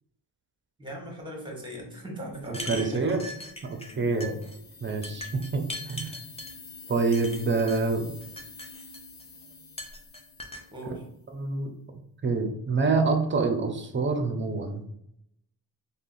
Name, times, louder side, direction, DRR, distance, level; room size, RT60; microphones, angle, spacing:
voice 1, 0.8-3.1 3.9-4.4 10.7-11.0, equal, 10° right, -1 dB, 1.1 m, -39 dB
sound 1, 2.4-3.9 4.2-4.6 5.0-6.5 7.1-7.8 8.2-9.2 9.8-10.6, left 1 dB, 15° left, 0.5 m, -40 dB
voice 2, 2.5-3.2 3.6-4.3 4.8-6.2 6.9-8.1 10.9-11.0 11.3-11.7 12.2-14.8, right 4 dB, 30° right, 5 dB, 0.6 m, -27 dB
sound 2, 3.2-11.2, left 4 dB, 50° left, 0.7 m, -48 dB
3.5 x 2.3 x 2.6 m, 0.75 s
cardioid pair, 65°, 42 cm